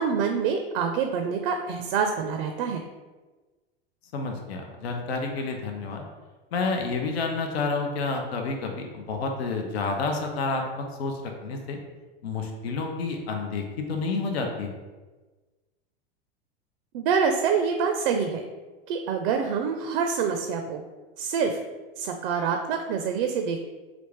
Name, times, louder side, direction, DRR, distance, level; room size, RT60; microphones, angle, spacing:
voice 1, 0.0-2.8 16.9-18.4 18.9-20.8 21.2-21.6 22.0-23.6, right 6 dB, 65° right, 5 dB, 0.4 m, -26 dB
voice 2, 4.1-6.0 6.5-11.8 12.2-14.7, left 3 dB, 80° left, 2 dB, 0.6 m, -29 dB
3.3 x 2.5 x 3.2 m, 1.3 s
hypercardioid pair, 100°, 31 cm